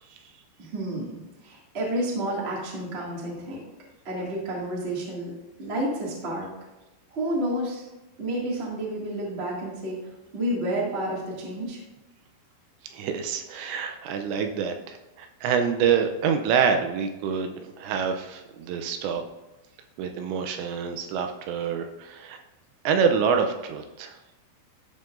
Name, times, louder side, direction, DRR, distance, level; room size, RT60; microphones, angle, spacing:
voice 1, 0.6-3.6 4.0-5.3 5.6-6.5 7.1-7.9 8.2-10.0 10.3-11.8, right 1 dB, 50° right, -5 dB, 0.7 m, -30 dB
voice 2, 12.9-19.2 20.0-22.4 22.8-24.2, right 6 dB, 80° right, 5 dB, 2.8 m, -26 dB
14.0 x 5.7 x 2.6 m, 1.0 s
omnidirectional pair, 5.3 m